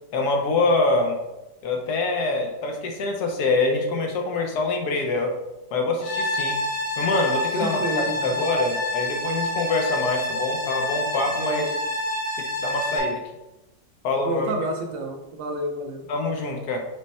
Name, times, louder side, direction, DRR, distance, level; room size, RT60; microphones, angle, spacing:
voice 1, 0.1-1.2 1.6-5.3 5.7-6.6 7.0-11.7 12.6-13.2 14.0-14.5 16.1-16.8, left 3 dB, 70° left, 3 dB, 1.1 m, -25 dB
sound 1, 6.0-13.0, left 1 dB, 85° left, 1.6 m, -27 dB
voice 2, 7.6-8.4 11.4-11.7 14.2-16.1, right 2 dB, 85° right, 3 dB, 1.4 m, -29 dB
5.3 x 2.1 x 4.1 m, 0.98 s
omnidirectional pair, 1.9 m